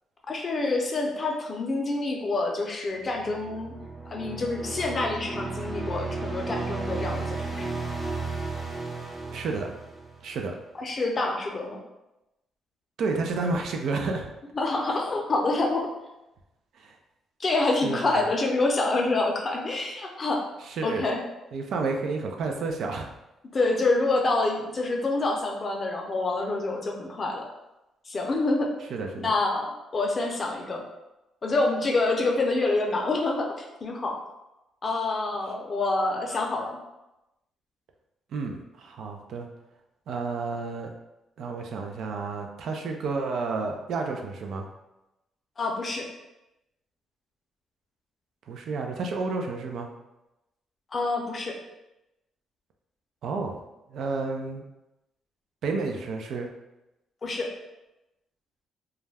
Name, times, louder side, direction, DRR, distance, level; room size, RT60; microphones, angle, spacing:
voice 1, 0.3-3.7 4.0-7.8 10.8-11.8 14.6-15.9 17.4-20.4 20.8-21.2 23.5-27.5 28.1-28.7 29.2-30.8 31.4-34.2 34.8-36.8 45.6-46.1 50.9-51.6 57.2-57.5, left 2 dB, 40° left, 0 dB, 0.5 m, -27 dB
sound 1, 3.1-10.5, right 3 dB, 30° right, 0.6 m, -34 dB
voice 2, 9.3-9.7 10.2-10.5 13.0-14.3 16.8-17.0 17.8-18.0 20.6-21.0 21.5-23.1 28.9-29.3 38.3-39.5 40.1-40.9 41.4-44.7 48.5-49.9 53.2-53.6 53.9-54.6 55.6-56.5, right 4 dB, 70° right, 3 dB, 0.4 m, -30 dB
2.3 x 2.1 x 3.3 m, 0.95 s
cardioid pair, 90°, 0 cm